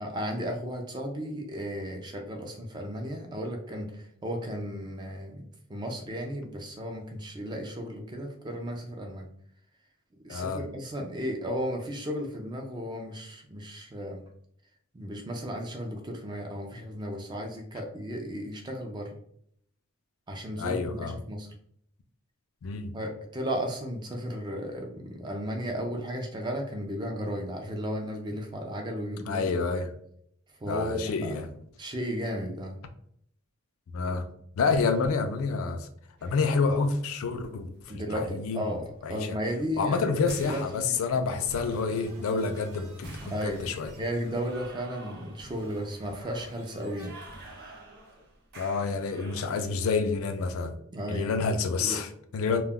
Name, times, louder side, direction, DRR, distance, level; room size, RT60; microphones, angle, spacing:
voice 1, 0.0-9.3 10.2-14.2 14.9-19.2 20.3-21.5 22.9-29.5 30.6-31.5 31.8-32.7 37.9-40.9 43.2-47.1 50.9-51.4 51.7-52.1, equal, 20° right, 2 dB, 0.3 m, -34 dB
voice 2, 10.3-10.6 20.6-21.2 22.6-22.9 29.3-29.9 30.7-31.5 33.9-34.3 34.6-35.9 36.2-37.7 38.1-38.6 39.0-39.4 39.8-43.9 48.6-50.7 51.1-52.6, left 4 dB, 65° left, 8 dB, 0.3 m, -28 dB
sound 1, 36.2-50.0, right 1 dB, 45° right, 0.7 m, -49 dB
sound 2, 41.3-47.1, right 1 dB, 85° right, 0.7 m, -50 dB
2.2 x 2.0 x 3.5 m, 0.68 s
head